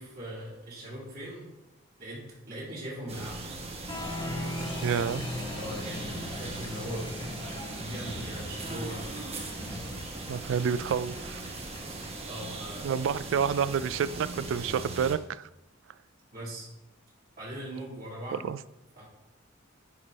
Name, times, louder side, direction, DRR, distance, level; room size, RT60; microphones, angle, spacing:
voice 1, 0.0-1.5 2.0-3.5 5.5-9.0 12.3-13.0 16.3-16.7 17.4-18.5 19.0-19.1, equal, 50° right, 2.8 m, -40 dB
sound 1, 3.1-15.2, right 3 dB, 30° right, 1.0 m, -39 dB
Applause, 3.8-12.2, left 1 dB, 25° left, 1.2 m, -39 dB
voice 2, 4.8-5.2 10.3-11.4 12.8-15.5 18.4-18.6, right 7 dB, 70° right, 0.3 m, -29 dB
9.6 x 3.5 x 5.0 m
head